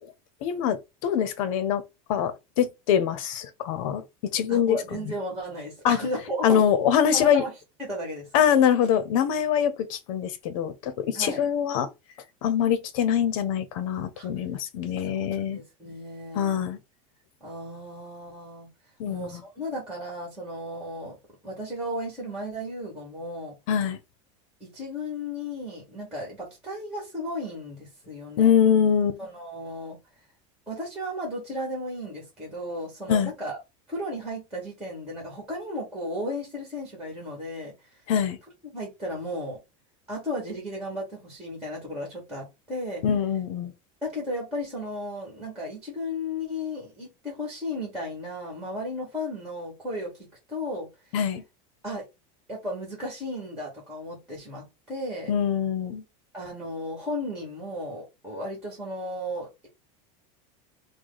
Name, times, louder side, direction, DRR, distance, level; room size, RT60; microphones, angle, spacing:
voice 1, 0.4-1.8 2.1-4.0 4.3-4.8 5.8-6.0 6.4-7.4 8.3-11.9 12.4-15.6 16.3-16.8 19.0-19.4 23.7-24.0 28.4-29.2 33.1-33.3 38.1-38.4 43.0-43.7 51.1-51.4 55.3-56.0, left 8 dB, 70° left, 0.8 m, -24 dB
voice 2, 4.5-6.6 7.1-7.5 7.8-8.3 11.1-11.4 14.2-14.3 15.0-16.6 17.4-18.7 19.1-21.2 21.4-23.6 24.6-28.6 29.2-30.0 30.7-33.6 33.9-38.0 38.7-39.6 40.1-43.0 44.0-51.2 51.8-52.0 52.5-55.4 56.3-59.7, left 1 dB, 5° right, 2.0 m, -34 dB
4.8 x 2.3 x 4.0 m
supercardioid pair, 160°, 18 cm